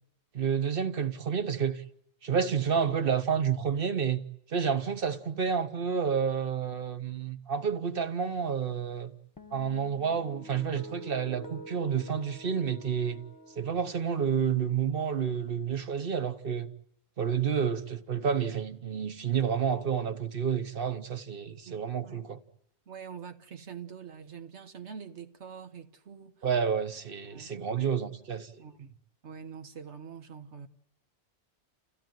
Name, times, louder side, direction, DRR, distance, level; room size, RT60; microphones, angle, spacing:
voice 1, 0.3-1.8 2.2-4.2 4.5-9.1 9.5-13.2 13.6-16.7 17.2-22.4 26.4-28.6, right 7 dB, 55° right, 1.3 m, -30 dB
sound 1, 9.4-15.9, right 1 dB, 20° left, 1.1 m, -49 dB
voice 2, 21.7-22.2 22.9-26.5 27.3-27.9 28.6-28.9 29.2-30.7, right 7 dB, 80° right, 1.5 m, -45 dB
29.5 x 16.0 x 9.2 m
omnidirectional pair, 1.1 m